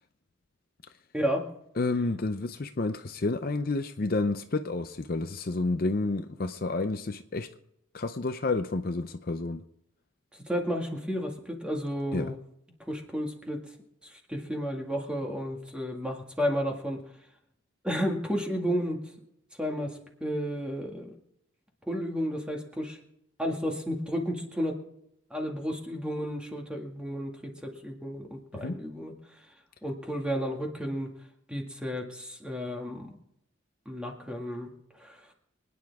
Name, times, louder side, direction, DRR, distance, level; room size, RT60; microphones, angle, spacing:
voice 1, 1.1-1.5 10.3-12.4 12.9-13.6 14.0-17.0 17.8-19.1 19.6-21.1 21.9-23.0 23.4-24.8 25.3-29.5 29.8-31.1 31.5-33.2 33.9-35.3, equal, 5° right, 1 dB, 2.0 m, -32 dB
voice 2, 1.8-7.5 7.9-9.6 12.1-12.3 28.5-28.8, left 3 dB, 45° left, 8 dB, 0.6 m, -30 dB
25.0 x 9.8 x 3.6 m, 0.76 s
head